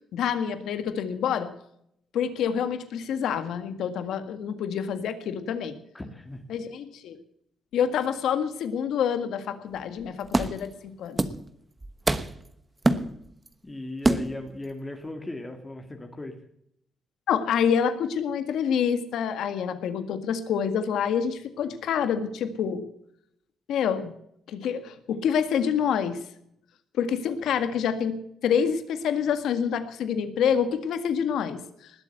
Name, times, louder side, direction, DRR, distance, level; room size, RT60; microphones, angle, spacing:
voice 1, 0.1-1.5 2.1-5.7 6.5-7.2 7.7-10.7 11.0-11.2 17.3-22.8 23.7-24.1 24.5-26.2 27.0-31.9, left 7 dB, 75° left, 10 dB, 1.8 m, -27 dB
voice 2, 5.9-6.4 13.6-16.4, left 2 dB, 20° left, 4 dB, 2.3 m, -37 dB
sound 1, 9.8-9.9 10.3-10.7 11.2-11.5 11.8-12.5 12.8-13.5 14.0-14.5, right 2 dB, 20° right, 1.1 m, -25 dB
20.0 x 8.0 x 7.9 m, 0.73 s
cardioid pair, 90°, 0 cm